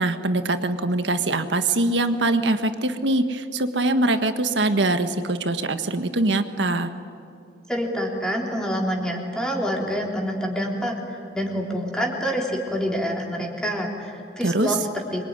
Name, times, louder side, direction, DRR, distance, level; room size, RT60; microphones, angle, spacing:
voice 1, 0.0-6.9 14.4-14.8, right 2 dB, 85° right, 8 dB, 1.6 m, -23 dB
voice 2, 7.7-15.2, equal, 5° left, -1 dB, 3.6 m, -27 dB
26.5 x 23.0 x 9.7 m, 2.4 s
head